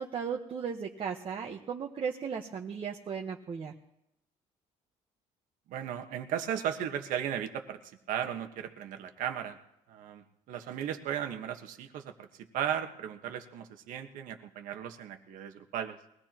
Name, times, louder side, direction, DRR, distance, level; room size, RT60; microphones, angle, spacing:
voice 1, 0.0-3.7, right 6 dB, 40° right, 0 dB, 1.2 m, -36 dB
voice 2, 5.7-7.8 8.1-9.6 9.9-12.3 12.5-16.0, right 9 dB, 80° right, 6 dB, 1.4 m, -36 dB
22.0 x 16.5 x 3.0 m, 0.80 s
cardioid pair, 115°, 14 cm